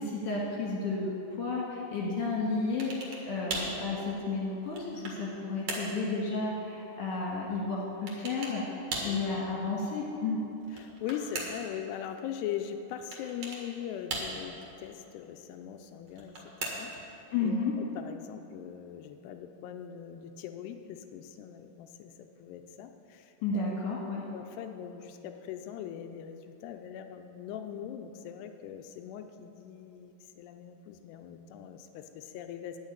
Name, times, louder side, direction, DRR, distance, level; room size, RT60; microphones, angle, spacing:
voice 1, 0.0-10.4 17.3-17.7 23.4-24.3, left 3 dB, 55° left, -4 dB, 2.5 m, -32 dB
sound 1, 2.8-3.2 3.5-3.8 4.4-5.2 5.7-6.0 8.1-8.6 8.9-9.2 10.6-11.7 13.1-13.6 14.1-14.6 16.1-17.0, right 2 dB, 55° right, 2.2 m, -37 dB
voice 2, 10.7-16.3 16.6-17.6 18.0-24.0 24.3-32.8, left 9 dB, 85° left, 7 dB, 2.4 m, -41 dB
10.5 x 6.4 x 8.8 m, 2.9 s
omnidirectional pair, 5.2 m